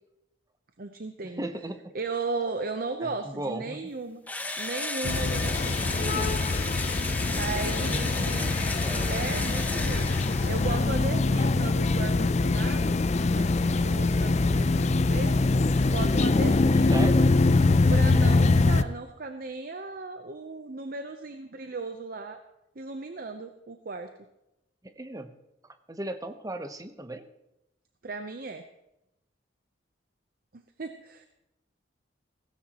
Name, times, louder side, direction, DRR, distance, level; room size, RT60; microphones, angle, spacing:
voice 1, 0.8-1.5 1.9-4.2 4.6-6.5 7.3-8.5 9.1-10.1 10.5-13.0 13.4-15.5 15.8-17.1 17.9-22.4 22.8-24.1 28.0-28.6 30.5-31.3, right 3 dB, 50° right, 7 dB, 0.8 m, -36 dB
voice 2, 1.4-1.8 3.0-3.8 7.8-9.3 16.9-17.3 24.8-25.3 25.9-27.2, right 1 dB, 20° right, 8 dB, 0.9 m, -36 dB
Engine / Drill, 4.3-10.8, left 2 dB, 10° left, 0.9 m, -34 dB
sound 1, 5.0-18.8, left 3 dB, 35° left, 0.5 m, -23 dB
17.0 x 16.0 x 3.0 m, 0.90 s
head